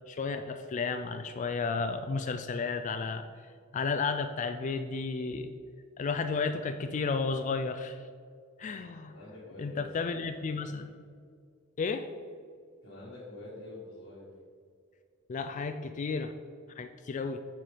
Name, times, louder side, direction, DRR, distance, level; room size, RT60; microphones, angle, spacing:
voice 1, 0.1-3.2 3.7-5.5 6.0-8.0 8.6-9.1 9.6-10.9 11.8-12.1 15.3-16.3 16.8-17.4, left 4 dB, 40° left, 7 dB, 0.3 m, -32 dB
voice 2, 9.1-10.5 12.8-14.3, left 2 dB, 55° left, -7 dB, 1.5 m, -47 dB
9.0 x 4.5 x 4.9 m, 2.1 s
head